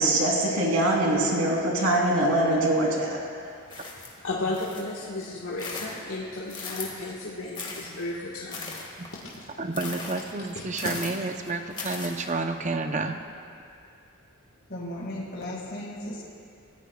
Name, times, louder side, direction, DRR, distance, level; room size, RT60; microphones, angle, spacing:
voice 1, 0.0-3.1, right 1 dB, 70° right, -2 dB, 2.9 m, -23 dB
sound 1, 3.7-5.0 5.4-7.1 7.5-12.3, left 3 dB, 20° left, 1.8 m, -39 dB
voice 2, 4.0-8.8 9.1-9.4 10.5-10.9, left 2 dB, 75° left, -6 dB, 1.5 m, -34 dB
voice 3, 9.6-13.2, right 3 dB, 35° right, 5 dB, 0.7 m, -30 dB
voice 4, 14.7-16.2, left 1 dB, 45° left, -3 dB, 2.0 m, -35 dB
27.0 x 15.5 x 2.3 m, 2.5 s
head